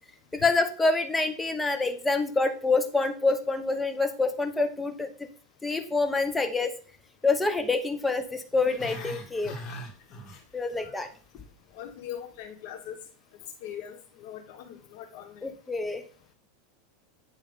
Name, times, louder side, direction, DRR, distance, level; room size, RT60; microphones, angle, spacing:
voice 1, 0.3-5.1 5.6-6.7 7.2-9.5 10.5-11.1 15.4-16.0, left 3 dB, 10° left, 7 dB, 0.9 m, -26 dB
Growling, 8.5-10.9 11.1-11.5 11.9-12.0, equal, 35° left, 2.0 m, -41 dB
voice 2, 10.7-11.1 11.7-13.0 13.6-15.5, left 10 dB, 60° left, 3 dB, 1.0 m, -41 dB
8.6 x 3.3 x 5.0 m, 0.40 s
supercardioid pair, 135°, 0 cm